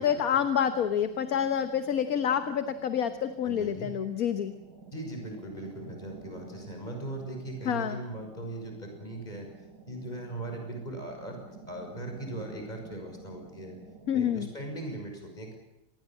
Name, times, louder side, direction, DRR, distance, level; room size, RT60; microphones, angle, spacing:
voice 1, 0.0-4.5 7.6-8.0 14.1-14.5, left 8 dB, 65° left, 9 dB, 1.6 m, -28 dB
sound 1, 0.6-15.0, right 4 dB, 65° right, 3.2 m, -50 dB
voice 2, 3.4-3.9 4.9-9.5 9.8-11.4 11.7-13.8 14.1-15.6, right 1 dB, 25° left, 3 dB, 6.3 m, -39 dB
26.0 x 21.0 x 7.5 m, 0.87 s
omnidirectional pair, 1.7 m